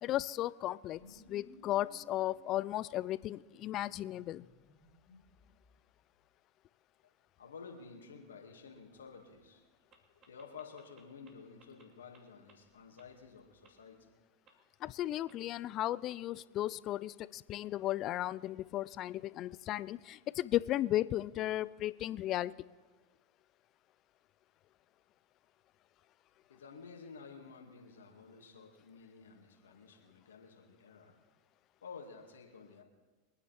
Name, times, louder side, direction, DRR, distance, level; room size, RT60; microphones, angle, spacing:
voice 1, 0.0-4.5 14.8-22.5, left 14 dB, 40° left, 19 dB, 0.5 m, -35 dB
sound 1, 0.9-6.1 8.8-9.5 9.7-10.2 12.7-14.1, left 3 dB, 20° left, 3.8 m, -63 dB
voice 2, 7.0-9.6 10.3-14.0 26.5-31.2 31.8-32.8, left 5 dB, 85° left, 1 dB, 2.3 m, -52 dB
sound 2, 9.9-10.0 10.2-11.3 11.6-11.8 12.1-12.2 12.5-12.6 13.0-13.1 13.6-13.7 14.5-14.6 15.3-15.4 16.1-16.2, right 6 dB, 35° right, 2.6 m, -62 dB
24.0 x 9.6 x 4.4 m, 1.3 s
hypercardioid pair, 100°, 0 cm